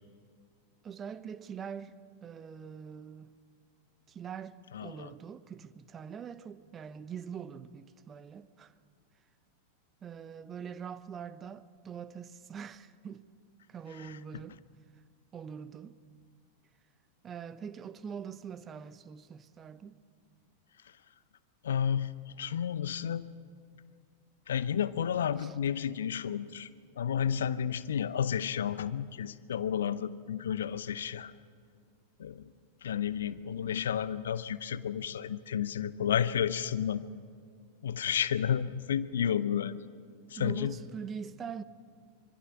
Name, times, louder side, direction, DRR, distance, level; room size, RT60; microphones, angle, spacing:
voice 1, 0.8-1.9 2.2-3.3 4.1-8.7 10.0-13.2 13.7-14.6 15.3-16.0 17.2-20.0 25.4-25.5 40.4-41.6, right 7 dB, 25° right, 0.8 m, -43 dB
voice 2, 4.7-5.1 14.0-14.1 21.6-23.3 24.5-26.7 27.0-31.3 32.2-32.5 32.8-37.0 37.8-39.8 40.3-40.7, left 8 dB, 65° left, 0.7 m, -31 dB
25.5 x 22.0 x 5.9 m
figure-of-eight pair, 90°, 0 cm